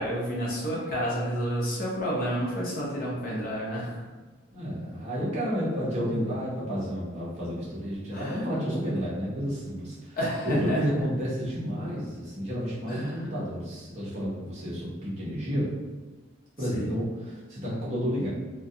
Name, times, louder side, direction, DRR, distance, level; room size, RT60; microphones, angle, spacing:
voice 1, 0.0-4.0 8.1-8.4 10.2-10.8 12.9-13.1 16.7-16.9, equal, 45° left, -5 dB, 0.6 m, -30 dB
voice 2, 4.5-10.2 10.4-15.7 16.6-18.3, equal, 35° right, -8 dB, 0.8 m, -31 dB
2.3 x 2.3 x 2.6 m, 1.3 s
head